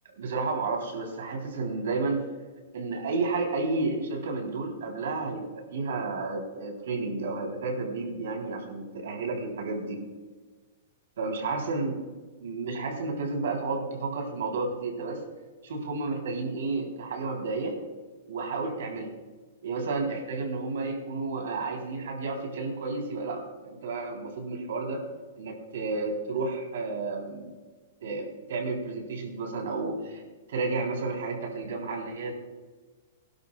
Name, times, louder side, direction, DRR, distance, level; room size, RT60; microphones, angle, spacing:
voice 1, 0.2-2.3 2.7-10.0 11.2-11.9 12.4-15.2 15.6-17.8 18.3-19.1 19.6-25.1 25.4-27.5 28.0-30.2 30.5-32.3, right 3 dB, 70° right, 1 dB, 3.6 m, -31 dB
21.5 x 12.0 x 2.4 m, 1.4 s
hypercardioid pair, 170°, 0 cm